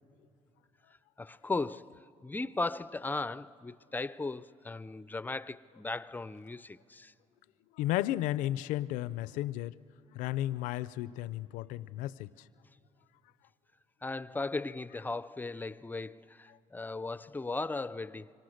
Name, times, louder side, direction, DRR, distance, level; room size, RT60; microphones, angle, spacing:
voice 1, 1.2-7.1 14.0-18.3, left 3 dB, 15° left, 0.4 m, -37 dB
voice 2, 7.7-9.8 10.1-12.3, left 14 dB, 85° left, 0.5 m, -33 dB
26.5 x 24.0 x 6.5 m
supercardioid pair, 85°, 13 cm